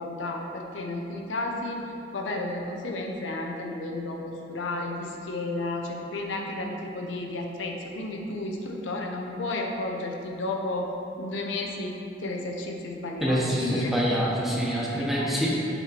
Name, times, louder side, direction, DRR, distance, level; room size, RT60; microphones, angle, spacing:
voice 1, 0.0-10.9 11.2-11.9 12.2-14.0 15.0-15.3, left 2 dB, 75° left, 2 dB, 0.6 m, -32 dB
voice 2, 13.2-15.5, equal, ahead, -6 dB, 1.0 m, -26 dB
6.9 x 4.4 x 4.1 m, 2.8 s
head